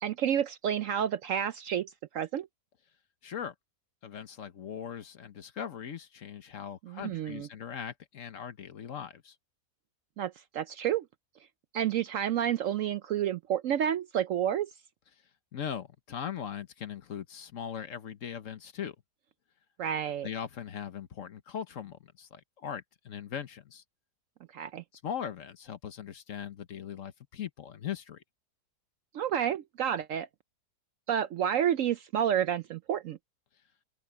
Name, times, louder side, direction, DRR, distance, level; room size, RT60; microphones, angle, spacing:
voice 1, 0.0-2.5 6.9-7.5 10.2-11.0 11.7-14.7 19.8-20.3 24.5-24.8 29.1-30.3 31.1-33.2, right 9 dB, 70° right, 0.8 m, -30 dB
voice 2, 3.2-3.5 4.0-9.4 15.5-18.9 20.2-23.8 25.0-28.2, left 8 dB, 55° left, 1.2 m, -40 dB
open air
omnidirectional pair, 1.7 m